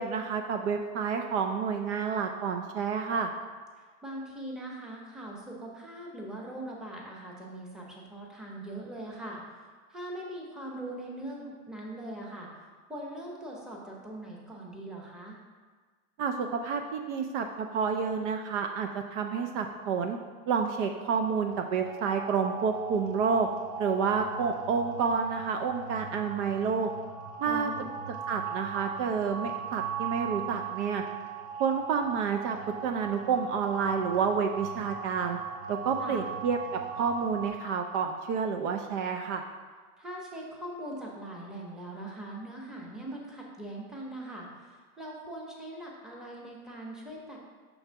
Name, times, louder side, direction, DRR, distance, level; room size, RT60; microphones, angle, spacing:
voice 1, 0.0-3.3 16.2-20.2 20.5-23.5 23.8-26.9 27.4-27.7 28.3-31.0 31.6-32.6 32.8-35.4 35.7-39.4, right 6 dB, 50° right, 5 dB, 0.5 m, -29 dB
voice 2, 3.8-9.4 9.9-12.5 12.9-15.4 27.5-27.9 36.0-36.2 40.0-47.4, right 1 dB, ahead, -3 dB, 0.8 m, -41 dB
sound 1, 20.9-37.5, right 7 dB, 70° right, 1.6 m, -39 dB
5.9 x 3.9 x 4.5 m, 1.5 s
supercardioid pair, 130°, 45 cm